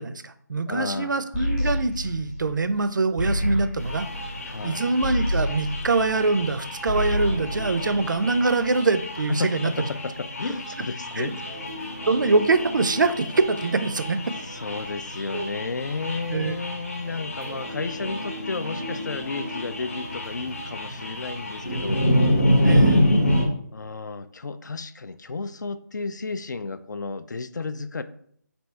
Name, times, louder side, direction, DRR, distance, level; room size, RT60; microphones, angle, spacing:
voice 1, 0.0-4.1 4.6-9.7 11.2-11.3 12.1-14.2 15.3-15.5 16.3-16.5 22.6-23.0, right 3 dB, 75° right, 11 dB, 0.4 m, -24 dB
voice 2, 0.7-1.2 4.5-4.8 9.3-11.7 14.5-22.0 23.7-28.0, left 4 dB, 65° left, 12 dB, 0.3 m, -32 dB
sound 1, 1.3-6.5 6.8-8.5, left 1 dB, 15° left, 0.9 m, -29 dB
sound 2, 3.8-23.5, equal, 45° left, 0.8 m, -28 dB
sound 3, 7.2-9.9 11.4-15.8 17.0-21.9 22.3-22.4 23.0-23.1, left 1 dB, 5° right, 0.4 m, -40 dB
3.3 x 2.7 x 4.2 m, 0.63 s
figure-of-eight pair, 175°, 10 cm